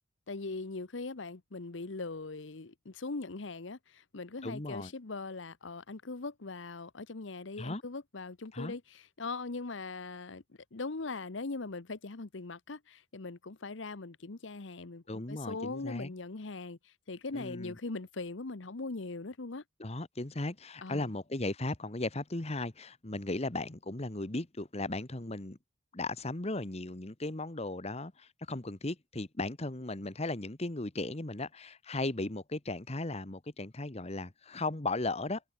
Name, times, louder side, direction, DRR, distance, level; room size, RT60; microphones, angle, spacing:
voice 1, 0.3-10.4 10.7-19.6 20.8-21.1, left 3 dB, 75° left, 1.0 m, -40 dB
voice 2, 4.4-4.9 7.6-7.8 8.5-8.7 15.1-16.1 17.3-17.7 19.8-25.6 25.9-35.4, left 2 dB, 35° left, 1.2 m, -36 dB
head